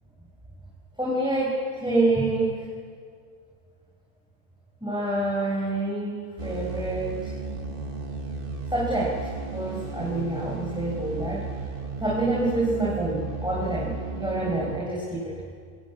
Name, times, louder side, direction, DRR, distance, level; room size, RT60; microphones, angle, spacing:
voice 1, 1.0-2.6 4.8-6.1 6.4-7.3 8.7-11.5 12.0-15.4, right 2 dB, 5° right, -5 dB, 5.2 m, -27 dB
sound 1, 6.4-14.8, right 4 dB, 35° right, 1.8 m, -34 dB
25.5 x 23.5 x 8.5 m, 2.1 s
omnidirectional pair, 1.6 m